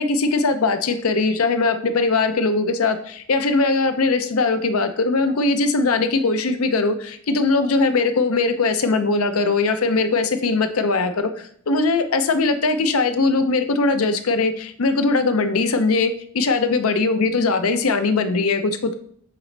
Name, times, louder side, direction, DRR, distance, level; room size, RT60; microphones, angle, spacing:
voice 1, 0.0-19.0, left 3 dB, 90° left, 9 dB, 0.7 m, -20 dB
7.4 x 4.0 x 3.3 m, 0.64 s
head